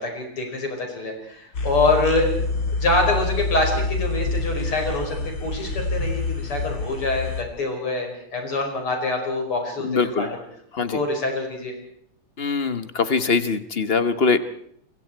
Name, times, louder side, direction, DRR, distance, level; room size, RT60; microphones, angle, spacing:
voice 1, 0.0-2.3 2.8-10.3 10.8-11.7, left 2 dB, 85° left, 2 dB, 6.2 m, -25 dB
sound 1, 1.5-7.4, left 3 dB, 55° left, 3.1 m, -27 dB
voice 2, 9.8-10.4 10.7-11.0 12.4-14.4, left 4 dB, 40° left, 11 dB, 0.9 m, -22 dB
28.5 x 23.5 x 4.6 m, 0.68 s
omnidirectional pair, 2.4 m